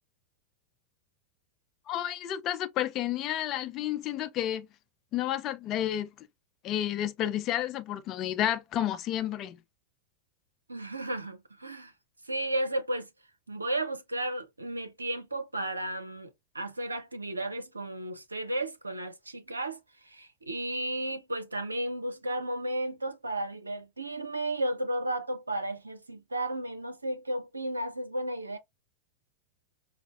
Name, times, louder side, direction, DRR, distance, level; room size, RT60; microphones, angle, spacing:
voice 1, 1.9-4.7 5.1-6.1 6.6-9.6, left 11 dB, 35° left, 0.4 m, -31 dB
voice 2, 10.7-11.9 12.2-13.1 13.5-28.6, right 1 dB, 80° right, 0.6 m, -34 dB
4.9 x 2.1 x 2.4 m
figure-of-eight pair, 90°, 0 cm